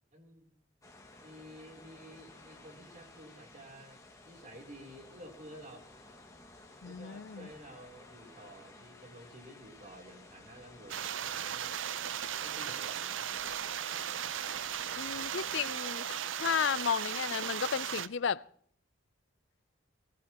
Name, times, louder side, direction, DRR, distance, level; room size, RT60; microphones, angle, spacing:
voice 1, 0.1-0.5 1.2-5.9 6.8-11.9 12.4-13.4, equal, 40° right, 3.4 m, -52 dB
sound 1, 0.8-15.8, left 2 dB, 15° left, 2.1 m, -55 dB
voice 2, 6.8-7.5 15.0-18.4, left 7 dB, 70° left, 0.5 m, -33 dB
sound 2, 10.9-18.1, right 9 dB, 75° right, 0.6 m, -36 dB
21.0 x 16.0 x 3.0 m
head